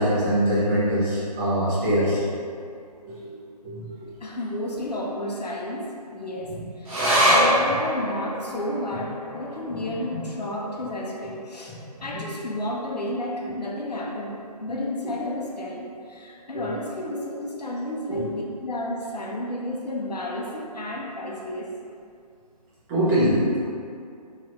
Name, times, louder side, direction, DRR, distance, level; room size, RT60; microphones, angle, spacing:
voice 1, 0.0-2.2 3.0-4.1 7.1-7.3 17.3-17.4 18.1-18.3 22.9-23.7, equal, 20° right, -11 dB, 1.2 m, -23 dB
voice 2, 4.2-21.7, left 1 dB, 75° left, -2 dB, 0.7 m, -32 dB
sound 1, 6.9-13.6 14.0-14.1 14.4-15.0 15.6-15.7, equal, 55° right, 1.1 m, -27 dB
3.7 x 3.2 x 3.0 m, 2.3 s
figure-of-eight pair, 145°, 21 cm